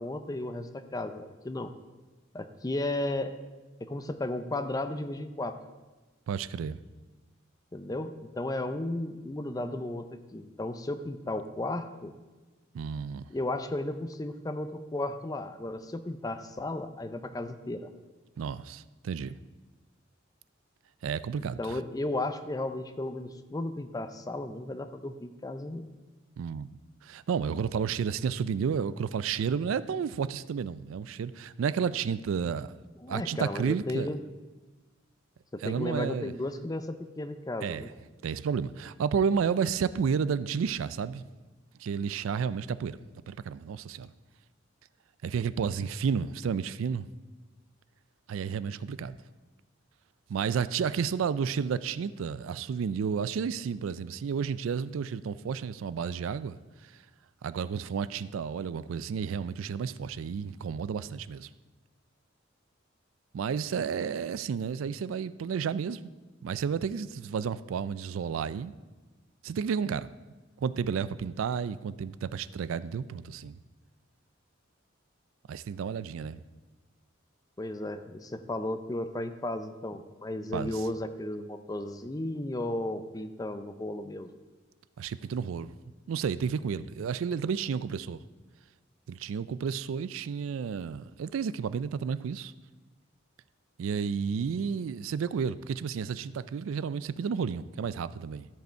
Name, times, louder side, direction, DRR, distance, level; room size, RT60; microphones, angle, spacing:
voice 1, 0.0-1.7 2.3-3.3 3.8-5.6 7.7-10.1 10.3-12.1 13.3-17.9 21.6-25.9 33.0-34.2 35.5-37.9 77.6-84.3, left 1 dB, 20° left, 10 dB, 0.5 m, -34 dB
voice 2, 6.3-6.8 12.7-13.2 18.4-19.4 21.0-21.8 26.4-26.8 27.0-32.7 33.1-34.1 35.6-36.3 37.6-37.8 38.2-41.2 41.8-43.0 43.3-44.1 45.2-47.1 48.3-49.2 50.3-56.9 57.4-61.5 63.3-66.0 66.4-68.7 69.4-70.1 70.6-73.6 75.5-76.4 80.5-80.7 85.0-85.7 86.1-88.2 89.1-92.5 93.8-98.5, right 6 dB, 80° right, 16 dB, 0.3 m, -31 dB
13.0 x 5.4 x 4.4 m, 1.2 s
head